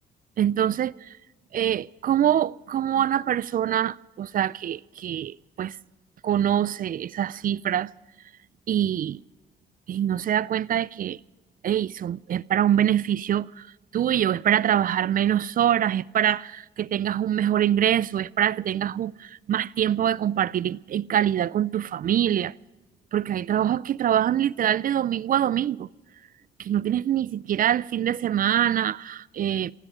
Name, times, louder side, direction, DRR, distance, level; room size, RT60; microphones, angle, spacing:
voice 1, 0.4-1.1 1.5-5.8 6.2-7.9 8.7-9.2 9.9-11.2 11.6-13.7 13.9-22.5 23.1-25.9 26.6-29.7, right 10 dB, 50° right, 0.4 m, -24 dB
16.5 x 16.0 x 5.0 m
cardioid pair, 80°, 18 cm